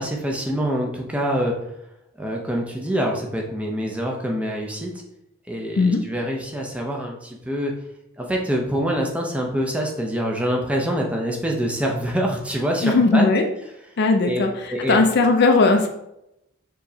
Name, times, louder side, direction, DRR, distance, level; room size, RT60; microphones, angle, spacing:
voice 1, 0.0-1.5 2.2-4.9 5.5-7.7 8.2-13.3 14.2-14.4 14.7-15.0, equal, 5° right, 0 dB, 0.5 m, -25 dB
voice 2, 12.8-13.5 14.0-15.9, left 3 dB, 50° left, 4 dB, 0.5 m, -18 dB
4.5 x 3.1 x 2.7 m, 0.82 s
head